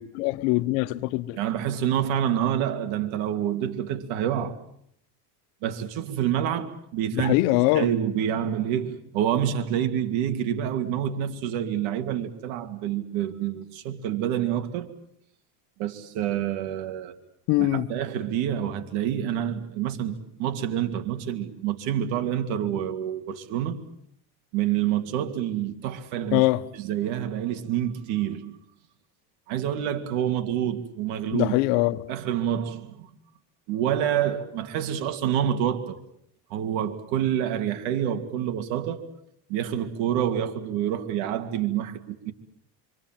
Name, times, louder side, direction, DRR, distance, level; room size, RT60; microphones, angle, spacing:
voice 1, 0.0-1.4 7.1-7.9 17.5-17.9 26.3-26.6 31.3-32.0, left 18 dB, 75° left, 1.3 m, -23 dB
voice 2, 1.4-4.6 5.6-7.4 7.7-14.9 15.8-17.1 17.6-23.8 24.5-26.4 26.7-28.6 29.5-31.5 32.1-33.1 33.7-36.0 36.5-39.1 39.5-42.3, right 10 dB, 75° right, 2.8 m, -27 dB
26.0 x 26.0 x 7.6 m
supercardioid pair, 105°, 46 cm